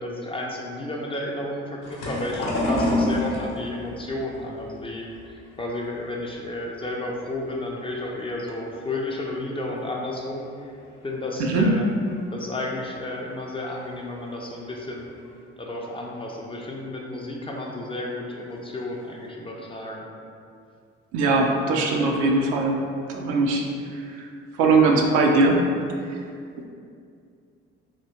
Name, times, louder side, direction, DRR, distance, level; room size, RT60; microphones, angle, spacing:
voice 1, 0.0-10.8 11.0-11.9 12.3-15.1 15.6-20.1, left 1 dB, 15° left, -2 dB, 0.4 m, -32 dB
sound 1, 1.8-6.9 7.3-8.2 8.7-9.0 9.3-9.4 10.6-10.7 11.2-11.3 11.9-12.0 12.1-12.5 13.7-13.9 14.4-14.5 15.0-15.4, left 1 dB, 55° left, 0.8 m, -28 dB
voice 2, 21.1-22.8 23.1-23.6 24.1-24.2 24.6-25.6, right 3 dB, 65° right, 1 dB, 0.5 m, -20 dB
2.9 x 2.8 x 2.8 m, 2.3 s
hypercardioid pair, 50°, 32 cm